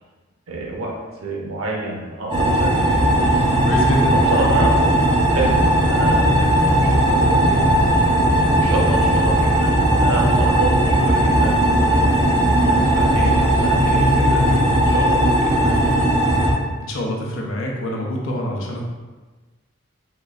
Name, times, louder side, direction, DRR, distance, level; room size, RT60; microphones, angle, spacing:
voice 1, 0.5-3.7 4.1-4.9 5.3-7.7 8.2-16.3, right 2 dB, 85° right, -1 dB, 0.7 m, -29 dB
sound 1, 2.3-16.5, right 1 dB, 25° right, 0.7 m, -17 dB
voice 2, 3.6-4.2 16.8-18.8, equal, 70° left, -1 dB, 0.6 m, -26 dB
3.7 x 3.1 x 2.3 m, 1.3 s
head